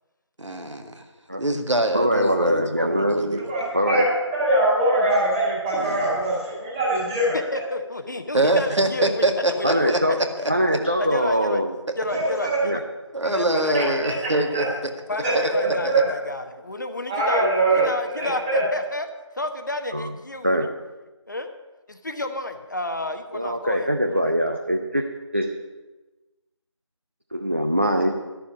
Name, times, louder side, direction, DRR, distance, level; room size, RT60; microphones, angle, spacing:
voice 1, 0.4-1.0 1.4-3.4 5.8-6.0 8.3-10.5 13.1-14.9 15.3-15.5 17.8-17.9, right 1 dB, 70° right, 5 dB, 1.9 m, -24 dB
voice 2, 1.9-3.4 3.7-4.0 9.6-10.2 10.5-11.7 12.6-12.8 19.9-20.1 20.4-20.7 23.3-25.1 25.3-25.5 27.3-28.1, equal, 25° right, 3 dB, 0.5 m, -22 dB
voice 3, 3.5-4.1 4.3-7.4 12.0-12.6 13.7-14.1 14.5-14.6 15.2-15.3 15.9-16.1 17.1-18.6, right 2 dB, 5° right, -9 dB, 2.5 m, -22 dB
voice 4, 7.3-9.2 9.6-10.1 11.0-11.6 12.0-12.8 13.2-14.0 15.1-17.5 17.8-19.1 19.4-20.7 21.3-21.5 21.9-24.3, left 2 dB, 40° left, 6 dB, 0.9 m, -31 dB
12.0 x 6.9 x 9.8 m, 1.1 s
figure-of-eight pair, 170°, 16 cm